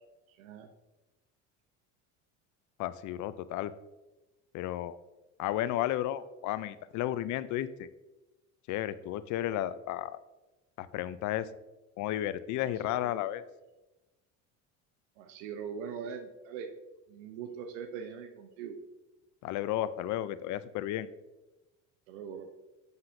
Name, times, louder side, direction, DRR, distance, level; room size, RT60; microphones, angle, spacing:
voice 1, 0.3-0.7 12.6-13.1 15.2-16.7 17.1-18.8 22.1-22.5, right 7 dB, 80° right, 7 dB, 0.7 m, -42 dB
voice 2, 2.8-3.7 4.5-5.0 5.4-7.9 8.7-10.2 10.8-11.5 12.0-13.4 19.4-21.1, left 13 dB, 50° left, 15 dB, 0.5 m, -33 dB
8.0 x 5.5 x 2.6 m, 1.1 s
supercardioid pair, 90°, 37 cm